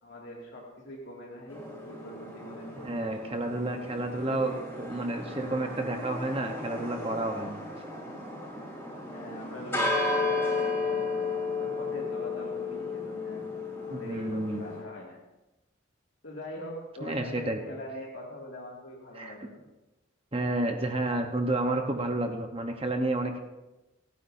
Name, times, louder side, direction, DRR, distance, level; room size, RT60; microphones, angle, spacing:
voice 1, 0.0-3.5 4.1-4.7 5.2-5.4 9.1-11.2 11.6-13.5 13.8-15.2 16.2-19.6, equal, 70° left, -4 dB, 2.4 m, -43 dB
sound 1, 1.5-14.8, left 3 dB, 10° left, 4.3 m, -34 dB
voice 2, 2.8-7.6 13.9-14.6 17.0-17.6 19.1-19.5 20.3-23.4, right 2 dB, 30° right, 4 dB, 1.0 m, -30 dB
29.0 x 9.8 x 2.7 m, 1.0 s
head